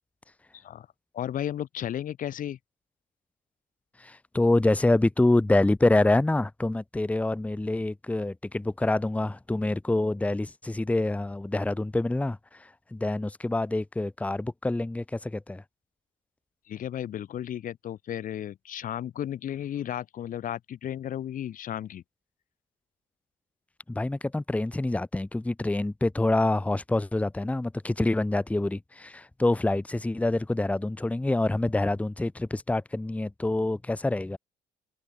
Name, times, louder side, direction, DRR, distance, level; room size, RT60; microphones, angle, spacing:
voice 1, 0.5-0.9 1.1-2.6 16.7-22.0, left 10 dB, 50° left, 1.4 m, -34 dB
voice 2, 4.0-15.6 23.9-34.4, left 2 dB, 10° left, 1.1 m, -26 dB
cardioid pair, 110°, 17 cm